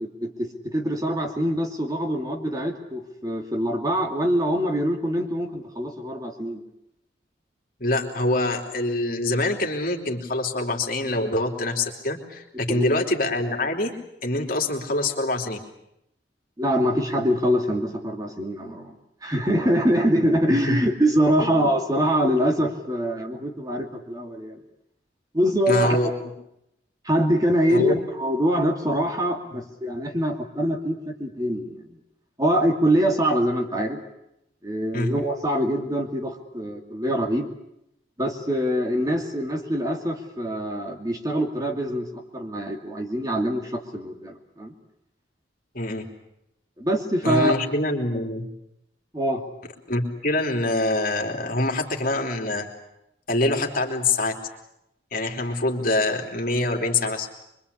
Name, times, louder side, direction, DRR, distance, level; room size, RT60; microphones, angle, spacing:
voice 1, 0.0-6.6 12.7-12.8 16.6-18.9 19.2-24.6 25.3-26.0 27.0-31.9 32.4-34.0 34.6-37.5 38.2-44.7 46.8-47.6 49.1-49.4, equal, 20° right, 2 dB, 2.4 m, -24 dB
voice 2, 7.8-13.9 14.2-15.6 20.6-20.8 21.4-21.5 25.7-26.1 27.7-28.0 29.5-29.6 34.9-35.1 45.7-46.1 47.2-48.5 49.9-52.7 53.3-54.4 55.1-57.3, left 2 dB, 50° left, 2 dB, 3.3 m, -25 dB
25.0 x 24.0 x 8.5 m, 0.82 s
head